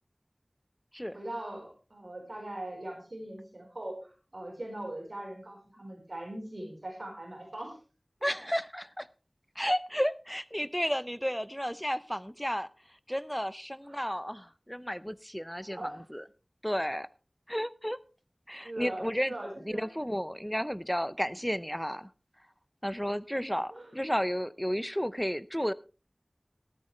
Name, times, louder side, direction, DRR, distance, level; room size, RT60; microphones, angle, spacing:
voice 1, 1.1-7.8 13.8-14.1 15.7-16.0 18.6-19.9 23.7-23.9, right 1 dB, 70° right, 1 dB, 4.5 m, -41 dB
voice 2, 8.2-9.1 9.6-12.7 13.1-16.2 16.6-17.1 17.5-18.0 18.5-19.3 19.7-22.1 22.8-25.7, equal, 5° left, 16 dB, 0.6 m, -32 dB
14.0 x 13.0 x 3.2 m, 0.34 s
wide cardioid pair, 45°, 0 cm